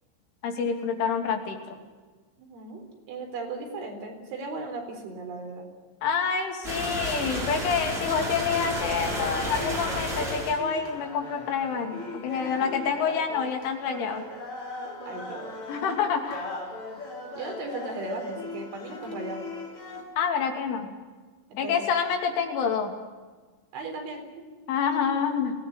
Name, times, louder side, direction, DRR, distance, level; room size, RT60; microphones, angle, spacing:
voice 1, 0.4-1.8 6.0-14.3 15.7-16.5 20.2-20.9 21.6-22.9 24.7-25.5, left 6 dB, 85° left, 3 dB, 5.3 m, -27 dB
voice 2, 2.4-5.7 12.2-12.8 15.1-15.6 17.3-19.5 21.6-21.9 23.7-24.6, right 3 dB, 80° right, 3 dB, 6.6 m, -37 dB
sound 1, 6.6-10.6, equal, 10° right, 5.5 m, -31 dB
sound 2, 8.5-20.0, left 3 dB, 30° left, 4.6 m, -39 dB
23.5 x 18.5 x 9.8 m, 1.4 s
omnidirectional pair, 5.4 m